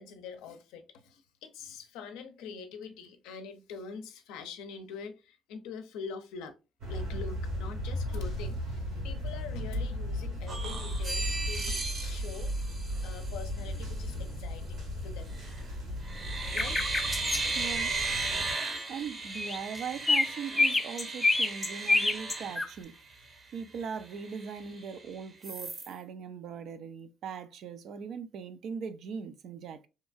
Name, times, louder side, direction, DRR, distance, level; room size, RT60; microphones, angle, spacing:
voice 1, 0.0-6.5 6.9-12.5 13.0-15.4 16.5-16.8, left 5 dB, 85° left, 0.5 m, -44 dB
sound 1, 6.8-18.5, equal, 85° right, 1.7 m, -36 dB
sound 2, 10.5-13.5 15.3-15.7 16.0-23.3 23.7-23.8 24.1-25.0 25.4-25.9, right 3 dB, 40° right, 0.7 m, -36 dB
sound 3, 16.6-17.4 19.3-19.8 20.1-22.7, left 3 dB, 20° left, 0.4 m, -26 dB
voice 2, 17.5-18.0 18.9-23.0 23.5-29.9, right 6 dB, 65° right, 0.4 m, -40 dB
2.8 x 2.3 x 2.5 m
supercardioid pair, 70°, 0 cm